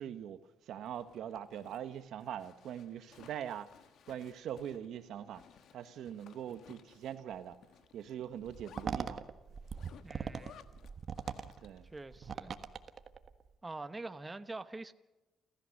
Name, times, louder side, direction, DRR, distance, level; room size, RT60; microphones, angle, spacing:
voice 1, 0.0-3.7 4.1-5.4 5.7-7.6 7.9-9.2 11.6-11.9, right 10 dB, 75° right, 1.2 m, -42 dB
Zipper (clothing), 0.7-11.9, left 8 dB, 75° left, 1.3 m, -60 dB
sound 1, 8.5-13.5, right 6 dB, 50° right, 1.4 m, -41 dB
voice 2, 10.0-10.6 11.8-12.5 13.6-14.9, right 2 dB, 20° right, 1.0 m, -45 dB
29.0 x 14.5 x 6.5 m
cardioid pair, 90°, 0 cm